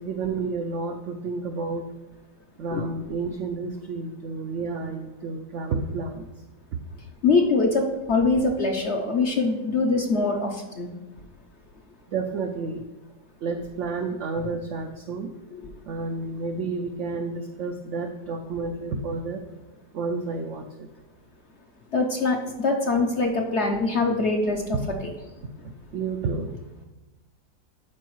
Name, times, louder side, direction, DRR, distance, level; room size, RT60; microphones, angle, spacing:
voice 1, 0.0-1.9 2.6-6.3 12.1-12.8 13.4-15.3 15.9-19.4 19.9-20.9 25.9-26.5, right 4 dB, 80° right, 5 dB, 0.6 m, -30 dB
voice 2, 7.2-10.9 15.5-15.7 21.9-24.8, left 3 dB, 60° left, 2 dB, 0.7 m, -23 dB
12.0 x 4.7 x 3.1 m, 1.1 s
omnidirectional pair, 1.8 m